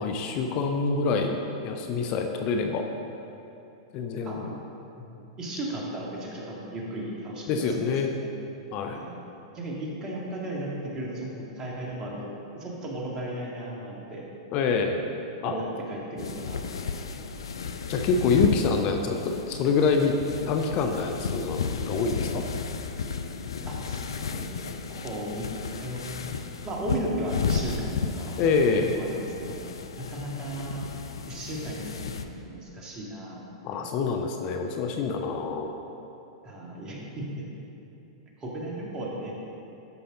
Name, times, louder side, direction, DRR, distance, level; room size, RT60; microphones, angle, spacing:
voice 1, 0.0-2.8 3.9-4.5 7.5-8.1 8.7-9.0 14.5-15.0 15.4-15.5 17.9-20.1 20.5-22.4 28.4-29.0 33.6-35.7, left 4 dB, 45° left, 4 dB, 0.7 m, -26 dB
voice 2, 5.0-7.8 8.2-8.3 8.9-9.1 9.5-11.3 11.6-14.3 15.4-16.6 23.7-26.0 26.6-29.6 30.0-30.9 31.3-33.5 33.7-33.8 36.4-37.4 38.4-39.3, right 1 dB, 25° right, -3 dB, 2.1 m, -35 dB
sound 1, 16.2-32.2, left 5 dB, 80° left, 0.5 m, -33 dB
13.0 x 5.6 x 3.8 m, 2.9 s
hypercardioid pair, 105°, 2 cm